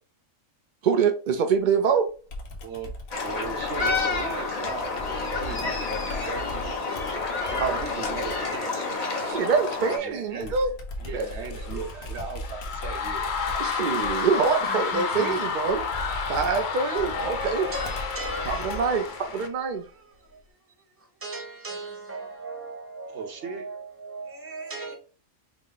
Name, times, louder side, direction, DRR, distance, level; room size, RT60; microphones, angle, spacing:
voice 1, 0.8-2.1 7.6-7.8 9.3-10.7 11.1-11.3 13.6-15.8 16.3-17.7 18.5-19.8, right 6 dB, 85° right, 0.4 m, -25 dB
Computer keyboard, 2.3-8.6 10.4-19.1, left 1 dB, 80° left, 1.3 m, -39 dB
voice 2, 2.6-2.9 3.2-6.7 7.4-9.3 9.7-10.6 11.0-13.7 14.9-15.0 23.1-23.7, right 4 dB, 60° right, 1.0 m, -38 dB
sound 1, 3.1-10.0, left 4 dB, 35° left, 0.8 m, -29 dB
sound 2, 11.2-19.5, left 5 dB, 65° left, 0.5 m, -31 dB
voice 3, 14.6-15.4 16.8-25.0, right 3 dB, 10° right, 0.8 m, -39 dB
5.0 x 2.0 x 3.8 m
omnidirectional pair, 1.4 m